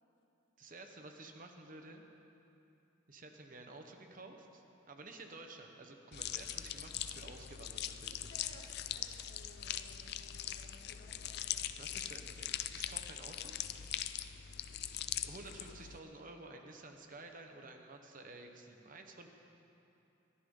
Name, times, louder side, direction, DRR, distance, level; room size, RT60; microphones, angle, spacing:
voice 1, 0.6-2.0 3.1-8.3 11.8-13.5 15.2-19.3, right 2 dB, 40° right, 4 dB, 1.1 m, -52 dB
sound 1, 6.1-16.0, left 11 dB, 50° left, 0.5 m, -41 dB
voice 2, 7.0-7.4 8.1-11.4, left 1 dB, 70° left, -3 dB, 3.0 m, -59 dB
23.0 x 14.0 x 3.9 m, 2.9 s
head